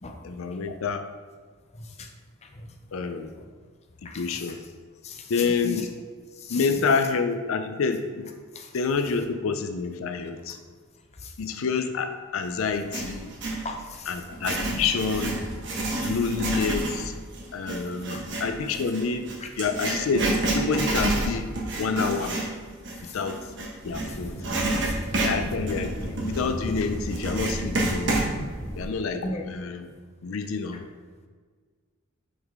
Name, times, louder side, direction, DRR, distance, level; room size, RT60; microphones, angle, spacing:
voice 1, 0.2-1.0 2.9-3.3 4.2-4.6 5.3-5.9 6.5-8.3 8.7-10.6 11.4-13.3 14.1-15.4 16.0-17.1 17.5-19.3 19.6-21.5 21.8-22.4 23.0-23.4 23.8-24.4 25.2-28.2 28.8-29.9 30.2-30.9, left 5 dB, 85° left, 7 dB, 0.5 m, -28 dB
voice 2, 1.8-2.1 2.4-2.7 4.0-4.6 5.0-5.9 6.4-6.7 8.5-8.7 11.2-11.3 13.6-14.2 14.5-14.8 16.0-16.1 18.1-18.2 19.4-19.5 23.0-23.2 24.0-24.2 24.8-25.1 29.2-29.5, left 3 dB, 30° left, 2 dB, 0.6 m, -38 dB
Writing, 12.7-13.6 14.2-24.1 24.4-28.3, right 2 dB, 60° right, 1.2 m, -29 dB
sound 1, 23.8-28.9, equal, 15° left, 1.9 m, -34 dB
6.0 x 5.5 x 3.6 m, 1.5 s
head